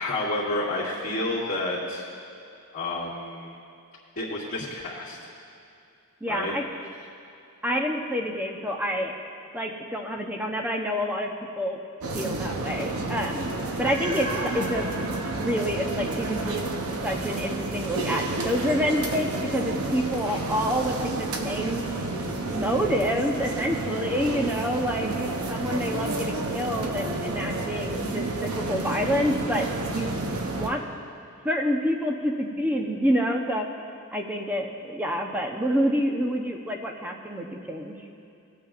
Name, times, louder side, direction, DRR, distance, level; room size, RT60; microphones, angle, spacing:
voice 1, 0.0-2.1 2.7-3.5 4.2-5.2 6.3-6.5 19.9-20.4 25.0-25.2, left 2 dB, 45° left, -13 dB, 2.4 m, -30 dB
voice 2, 6.2-6.6 7.6-9.1 9.5-11.3 11.6-11.8 12.1-13.5 13.8-14.3 14.5-15.0 15.4-16.6 17.0-21.8 22.5-30.2 30.5-30.8 31.4-33.7 34.1-38.0, equal, 10° right, 1 dB, 0.8 m, -27 dB
sound 1, 12.0-30.7, right 2 dB, 75° right, 0.8 m, -30 dB
19.5 x 8.7 x 2.5 m, 2.6 s
head